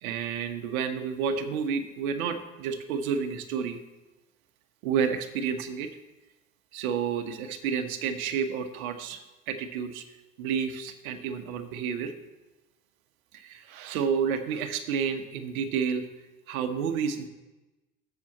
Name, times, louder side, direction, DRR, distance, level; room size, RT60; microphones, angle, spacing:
voice 1, 0.0-3.8 4.8-5.9 6.7-10.0 10.4-12.1 13.3-16.1 16.5-17.3, right 6 dB, 70° right, 8 dB, 1.1 m, -30 dB
7.3 x 6.9 x 7.2 m, 1.1 s
hypercardioid pair, 65°, 44 cm